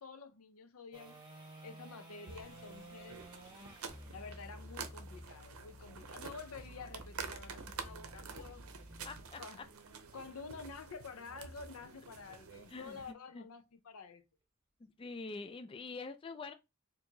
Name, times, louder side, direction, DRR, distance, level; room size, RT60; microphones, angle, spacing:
voice 1, 0.0-3.2 4.1-9.0 9.4-9.6 10.1-14.3, left 5 dB, 90° left, 0.6 m, -50 dB
sound 1, 0.9-7.1 13.6-13.7, right 2 dB, 20° right, 1.2 m, -55 dB
sound 2, 2.3-13.1, right 5 dB, 80° right, 0.6 m, -49 dB
sound 3, 3.9-9.2, equal, ahead, 1.0 m, -52 dB
voice 2, 9.0-9.4 12.7-13.0 13.3-13.4 14.8-16.5, left 3 dB, 25° left, 0.3 m, -45 dB
4.4 x 2.7 x 2.8 m
head